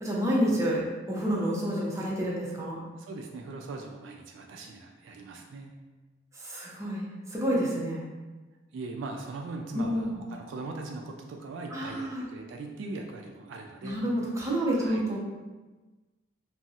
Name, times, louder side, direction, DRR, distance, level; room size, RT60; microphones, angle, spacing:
voice 1, 0.0-2.8 6.3-8.0 9.7-10.2 11.7-12.3 13.8-15.2, equal, 15° right, -5 dB, 0.6 m, -29 dB
voice 2, 3.0-5.7 8.7-14.0 14.8-15.0, right 3 dB, 70° right, 2 dB, 0.3 m, -40 dB
4.0 x 2.0 x 2.4 m, 1.2 s
head